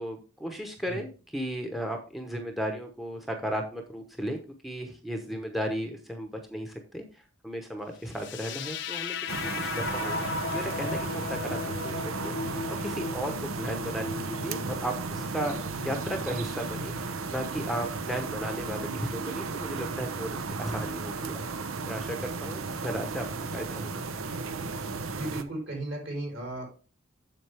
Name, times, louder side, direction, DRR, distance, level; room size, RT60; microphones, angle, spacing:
voice 1, 0.0-9.2 9.4-11.6 11.8-21.4 21.9-23.3 23.5-24.0, equal, ahead, 4 dB, 0.9 m, -35 dB
sound 1, 8.1-16.1, left 5 dB, 55° left, 0.7 m, -37 dB
sound 2, 9.3-25.4, right 4 dB, 80° right, 0.8 m, -34 dB
voice 2, 25.1-26.7, right 1 dB, 60° right, 1 dB, 4.2 m, -35 dB
7.6 x 7.2 x 3.4 m, 0.34 s
head